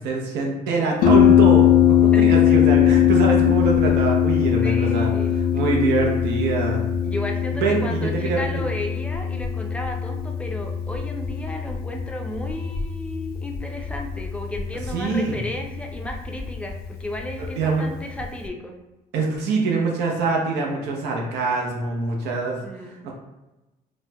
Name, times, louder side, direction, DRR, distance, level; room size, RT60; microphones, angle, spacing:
voice 1, 0.0-6.8 7.5-8.4 14.9-15.4 17.4-17.8 19.1-22.6 22.8-23.1, right 4 dB, 80° right, -1 dB, 0.6 m, -24 dB
Harp, 1.0-18.5, left 9 dB, 65° left, 0.4 m, -21 dB
voice 2, 2.1-2.6 4.6-5.5 7.1-18.7 22.6-23.0, left 1 dB, 5° left, 2 dB, 0.4 m, -34 dB
4.1 x 2.1 x 2.2 m, 1.0 s
cardioid pair, 110°, 17 cm